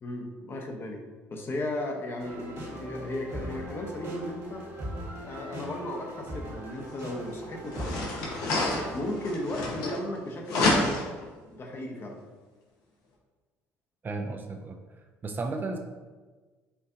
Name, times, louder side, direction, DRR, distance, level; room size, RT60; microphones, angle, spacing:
voice 1, 0.0-1.0 1.3-4.6 5.2-8.1 8.9-10.9 11.5-12.2, left 1 dB, 40° left, 2 dB, 0.7 m, -35 dB
sound 1, 2.2-9.3, right 1 dB, 50° right, 1.3 m, -40 dB
sound 2, 7.0-7.1 7.7-10.2 10.5-11.2, left 2 dB, 75° left, 0.8 m, -28 dB
voice 2, 14.0-14.8 15.2-15.8, right 3 dB, 35° right, 4 dB, 0.4 m, -33 dB
4.5 x 2.5 x 2.6 m, 1.3 s
supercardioid pair, 70°, 6 cm